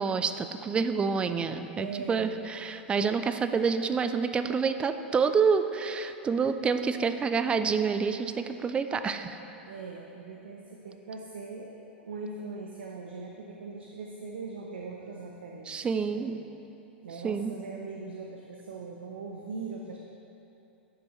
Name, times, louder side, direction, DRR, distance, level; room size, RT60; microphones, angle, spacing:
voice 1, 0.0-9.4 15.7-16.4 17.2-17.5, right 5 dB, 15° right, 10 dB, 0.4 m, -28 dB
voice 2, 1.7-2.4 9.7-16.5 17.0-20.0, right 4 dB, 70° right, 0 dB, 0.6 m, -41 dB
11.5 x 6.4 x 3.0 m, 3.0 s
figure-of-eight pair, 100°, 6 cm